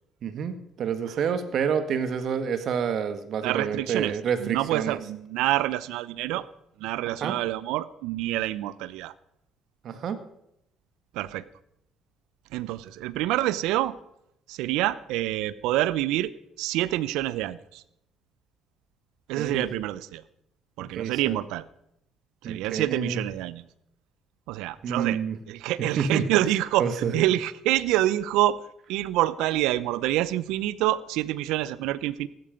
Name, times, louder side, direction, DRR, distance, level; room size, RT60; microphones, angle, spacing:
voice 1, 0.2-5.0 7.2-7.4 9.8-10.2 19.4-19.7 20.9-21.4 22.4-23.2 24.8-25.4 26.0-26.3 26.8-27.2, right 7 dB, 60° right, 10 dB, 1.7 m, -28 dB
voice 2, 3.4-6.4 6.8-9.1 11.1-11.4 12.5-13.9 14.5-16.3 16.6-17.8 19.3-20.2 20.8-21.6 22.4-23.6 24.5-25.2 25.5-28.6 28.9-32.3, right 15 dB, 80° right, 18 dB, 0.7 m, -27 dB
15.5 x 12.5 x 5.2 m, 0.78 s
hypercardioid pair, 60°, 0 cm